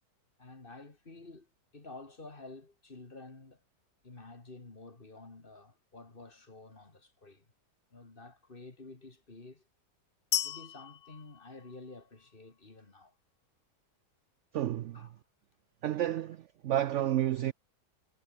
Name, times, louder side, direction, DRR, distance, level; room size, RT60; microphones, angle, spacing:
voice 1, 0.4-3.6 4.0-7.5 7.9-9.6 10.4-13.1 14.9-15.1, left 3 dB, 30° left, 2.5 m, -50 dB
sound 1, 10.3-12.3, left 10 dB, 60° left, 0.6 m, -36 dB
voice 2, 14.5-15.0 15.8-17.5, right 12 dB, 70° right, 0.7 m, -30 dB
omnidirectional pair, 1.8 m